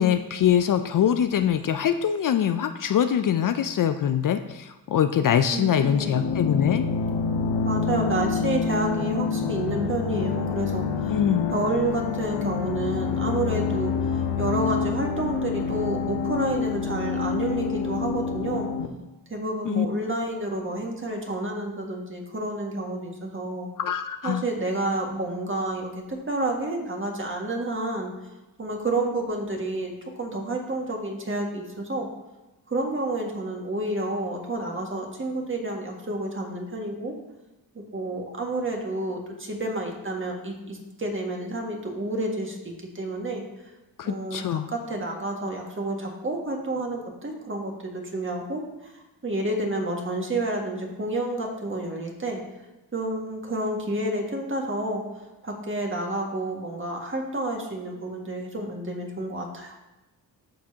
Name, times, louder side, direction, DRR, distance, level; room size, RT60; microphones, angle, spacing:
voice 1, 0.0-6.8 11.1-11.5 19.7-19.9 23.8-24.4 44.0-44.7, left 9 dB, 50° left, 9 dB, 0.5 m, -23 dB
voice 2, 5.5-6.1 7.6-11.2 11.5-18.7 19.3-23.7 24.2-28.1 28.6-29.9 30.2-32.1 32.7-37.1 37.9-43.4 44.0-48.9 49.2-52.4 52.9-55.0 55.4-59.8, right 2 dB, 30° right, 1 dB, 1.8 m, -30 dB
sound 1, 5.8-18.9, left 5 dB, 70° left, 0.9 m, -27 dB
13.5 x 4.7 x 2.8 m, 1.0 s
cardioid pair, 70°, 41 cm